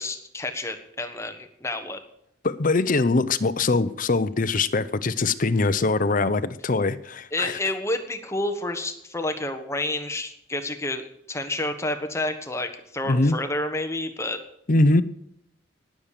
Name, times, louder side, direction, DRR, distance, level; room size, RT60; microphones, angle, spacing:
voice 1, 0.0-2.0 7.3-14.4, left 2 dB, 15° left, 6 dB, 1.3 m, -29 dB
voice 2, 2.4-7.6 13.1-13.4 14.7-15.0, left 3 dB, 45° left, 13 dB, 0.7 m, -22 dB
19.0 x 7.4 x 6.8 m, 0.75 s
head